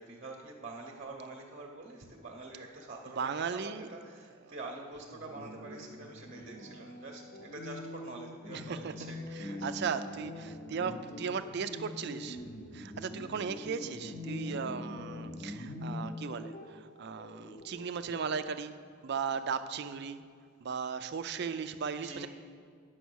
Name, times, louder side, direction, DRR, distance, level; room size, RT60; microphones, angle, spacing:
voice 1, 0.0-9.6 22.0-22.3, right 2 dB, 35° right, 0 dB, 0.8 m, -46 dB
voice 2, 3.2-3.9 8.5-8.9 9.3-12.4 12.7-18.7 19.0-20.2 20.6-22.3, right 6 dB, 50° right, 11 dB, 0.4 m, -36 dB
sound 1, 5.1-18.4, left 1 dB, 35° left, 0.8 m, -44 dB
9.3 x 6.1 x 6.2 m, 2.1 s
head